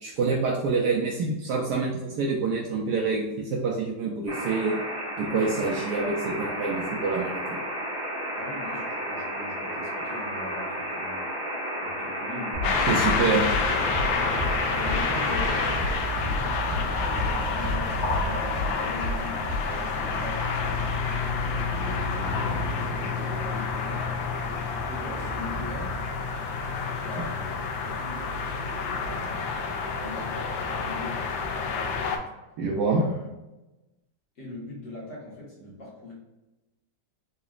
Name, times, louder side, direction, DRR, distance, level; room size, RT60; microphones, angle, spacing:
voice 1, 0.0-4.8 5.2-7.6 12.9-13.5 32.6-33.0, right 4 dB, 75° right, -2 dB, 1.0 m, -26 dB
sound 1, 4.3-15.8, equal, 15° right, 1.3 m, -33 dB
voice 2, 8.3-11.3 11.8-13.3 14.2-20.8 21.7-24.1 24.9-26.0 27.0-28.4 28.9-29.5 29.9-31.4 32.8-33.3 34.4-36.1, left 1 dB, 60° left, -7 dB, 1.9 m, -41 dB
sound 2, 12.5-20.9, left 1 dB, 50° right, 1.5 m, -34 dB
sound 3, 12.6-32.2, left 4 dB, 80° left, 1.3 m, -28 dB
4.0 x 2.8 x 2.4 m, 1.0 s
omnidirectional pair, 2.1 m